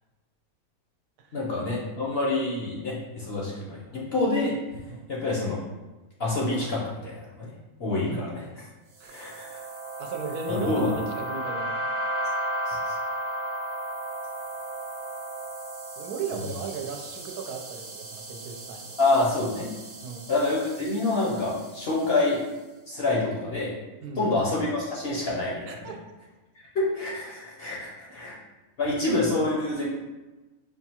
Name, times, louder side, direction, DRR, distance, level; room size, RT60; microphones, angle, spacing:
voice 1, 1.3-4.5 5.1-5.6 6.2-7.5 7.8-8.7 9.1-9.6 10.5-11.0 12.7-13.0 19.0-19.7 20.3-22.4 22.9-23.7 24.2-25.9 26.7-28.4 28.8-29.9, left 2 dB, 55° left, -5 dB, 0.8 m, -27 dB
sound 1, 9.0-22.4, right 1 dB, 50° right, 1.0 m, -35 dB
voice 2, 10.0-11.8 16.0-19.0 20.0-20.3 24.0-24.3 25.7-25.9, right 5 dB, 80° right, 3 dB, 1.1 m, -36 dB
5.5 x 2.3 x 2.8 m, 1.1 s
omnidirectional pair, 1.6 m